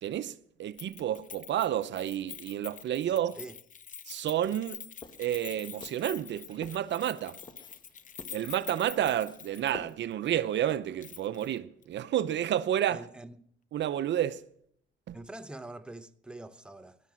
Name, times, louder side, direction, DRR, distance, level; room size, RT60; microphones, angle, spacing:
voice 1, 0.0-3.4 4.1-4.8 5.2-7.4 8.3-13.1 13.7-14.4 15.1-15.2, right 11 dB, 65° right, 0.7 m, -30 dB
Keys jangling, 0.8-9.9 10.2-10.3 11.0-11.5 11.8-11.9, left 7 dB, 40° left, 0.7 m, -46 dB
voice 2, 3.1-3.6 12.9-13.5 15.1-17.0, right 2 dB, 5° right, 0.8 m, -45 dB
sound 1, 5.0-10.3, left 2 dB, 25° left, 1.5 m, -50 dB
17.5 x 12.0 x 6.2 m
cardioid pair, 90°, 20 cm